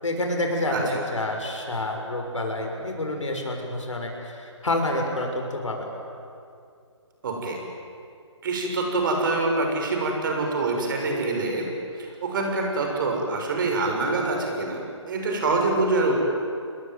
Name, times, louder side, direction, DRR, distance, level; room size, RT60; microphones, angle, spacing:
voice 1, 0.0-5.9, left 1 dB, 75° left, 2 dB, 6.5 m, -28 dB
voice 2, 0.7-1.0 7.2-7.6 8.4-11.7 12.0-16.1, right 3 dB, 40° right, 2 dB, 6.5 m, -25 dB
29.0 x 21.0 x 9.3 m, 2.4 s
figure-of-eight pair, 150°, 16 cm